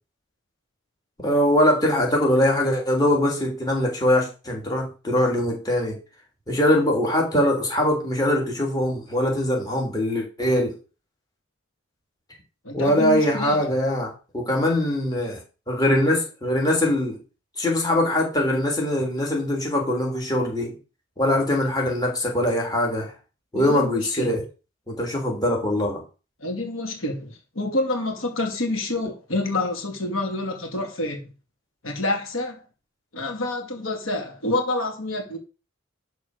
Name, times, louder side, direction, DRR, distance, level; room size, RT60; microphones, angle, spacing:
voice 1, 1.2-6.0 6.5-10.8 12.7-15.4 15.7-17.2 17.6-20.7 21.2-23.1 23.5-24.4 24.9-26.0, left 1 dB, 20° left, 3.0 m, -22 dB
voice 2, 12.6-13.6 23.5-24.3 26.4-31.2 31.8-32.6 33.1-35.4, left 2 dB, 85° left, 2.5 m, -28 dB
11.5 x 4.3 x 6.5 m
head